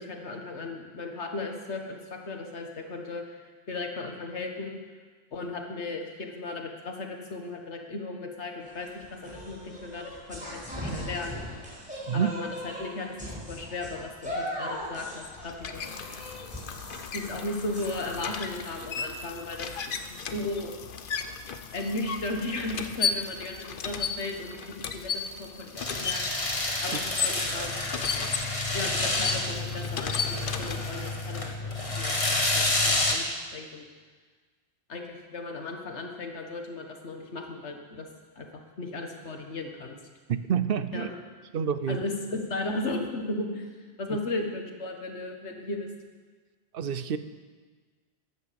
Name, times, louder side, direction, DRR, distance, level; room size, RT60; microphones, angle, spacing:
voice 1, 0.0-3.4 3.7-4.8 5.3-11.5 12.1-15.8 17.1-20.7 21.7-26.2 26.8-27.9 28.7-31.7 32.0-33.9 34.9-38.1 38.4-40.0 40.9-41.1 41.9-43.7 44.0-45.9, left 2 dB, 90° left, 3 dB, 1.8 m, -36 dB
sound 1, 8.6-18.8, equal, 5° right, 5.1 m, -40 dB
sound 2, 15.0-31.2, left 6 dB, 55° left, 0.9 m, -35 dB
sound 3, 25.8-33.2, left 2 dB, 30° left, 1.6 m, -29 dB
voice 2, 40.3-41.1 41.5-42.0 46.7-47.2, right 8 dB, 60° right, 12 dB, 0.9 m, -27 dB
13.5 x 10.5 x 7.0 m, 1.4 s
omnidirectional pair, 1.1 m